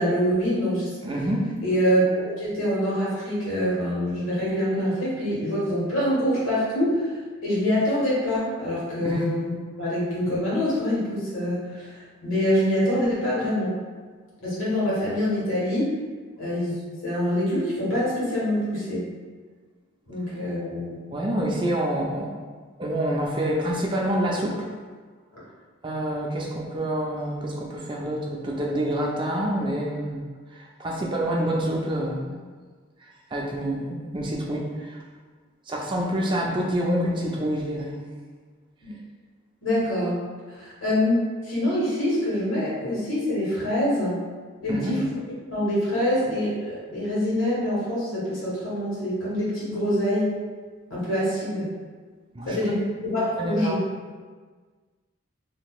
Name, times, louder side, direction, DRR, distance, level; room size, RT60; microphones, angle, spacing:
voice 1, 0.0-0.9 1.6-7.1 7.4-9.5 9.8-13.8 14.4-15.9 16.4-19.0 20.1-21.0 38.8-39.0 39.6-40.2 40.5-44.2 44.6-45.0 45.5-50.3 50.9-51.7 52.5-52.8 53.0-53.8, equal, 85° left, -8 dB, 1.5 m, -25 dB
voice 2, 1.0-1.5 9.0-9.2 21.1-22.3 22.8-24.7 25.8-30.2 30.5-32.4 33.3-35.0 35.7-38.0 44.7-45.1 52.3-52.8 53.1-53.8, right 1 dB, 25° right, -1 dB, 0.4 m, -27 dB
3.9 x 2.7 x 2.4 m, 1.5 s
head